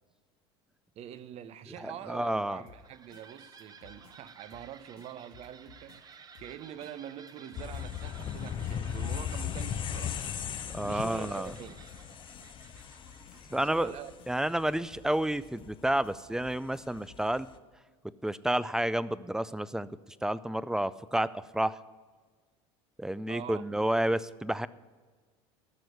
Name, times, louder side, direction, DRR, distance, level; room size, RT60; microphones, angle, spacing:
voice 1, 1.0-10.2 10.8-11.9 13.5-14.1 23.3-23.7, right 10 dB, 50° right, 0.8 m, -45 dB
voice 2, 1.8-2.6 10.7-11.5 13.5-13.9 14.3-17.5 18.2-19.9 20.2-21.8 23.0-24.7, right 1 dB, 5° right, 0.5 m, -30 dB
sound 1, 2.5-15.0, right 5 dB, 30° right, 1.1 m, -55 dB
sound 2, 2.7-17.4, left 7 dB, 80° left, 2.1 m, -58 dB
sound 3, 7.5-17.6, left 9 dB, 35° left, 0.8 m, -38 dB
13.5 x 6.3 x 9.6 m
supercardioid pair, 100°, 14 cm